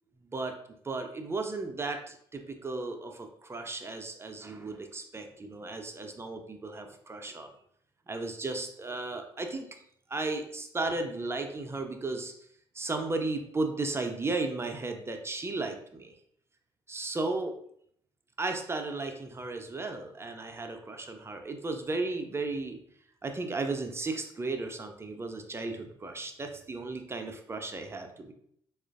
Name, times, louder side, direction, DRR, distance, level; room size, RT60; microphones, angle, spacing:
voice 1, 0.8-7.5 8.1-9.8 10.1-12.3 12.7-16.2 16.9-17.6 18.4-22.8 23.2-28.3, right 3 dB, 20° right, 5 dB, 0.5 m, -35 dB
4.3 x 2.4 x 2.4 m, 0.67 s
figure-of-eight pair, 45°, 12 cm